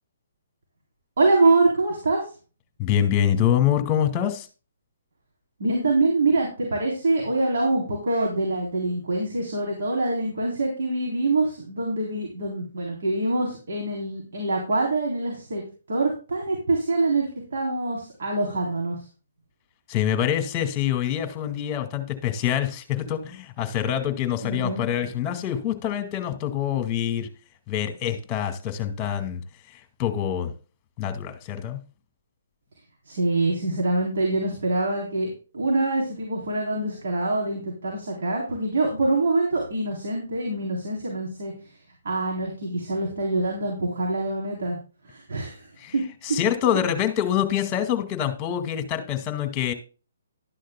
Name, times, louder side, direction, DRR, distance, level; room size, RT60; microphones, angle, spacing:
voice 1, 1.2-2.2 5.6-15.6 15.9-17.3 17.5-19.0 24.4-24.9 33.1-41.5 42.0-44.8 45.1-45.7 45.9-46.0, right 2 dB, 65° right, -1 dB, 3.7 m, -25 dB
voice 2, 2.8-4.5 19.9-27.3 27.7-29.4 30.0-30.5 31.0-31.8 45.8-45.9 46.2-49.7, left 10 dB, 25° left, 9 dB, 2.0 m, -25 dB
12.5 x 11.5 x 2.3 m, 0.35 s
hypercardioid pair, 140°, 0 cm